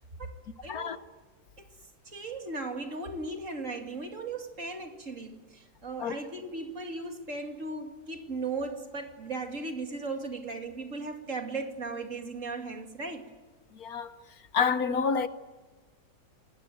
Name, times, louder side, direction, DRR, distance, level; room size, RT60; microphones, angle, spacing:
voice 1, 0.6-1.0 1.6-1.7 2.0-13.3, right 3 dB, 45° right, 2.8 m, -37 dB
voice 2, 13.7-14.1 14.5-15.3, left 6 dB, 65° left, 1.4 m, -28 dB
28.5 x 19.5 x 9.3 m
omnidirectional pair, 1.8 m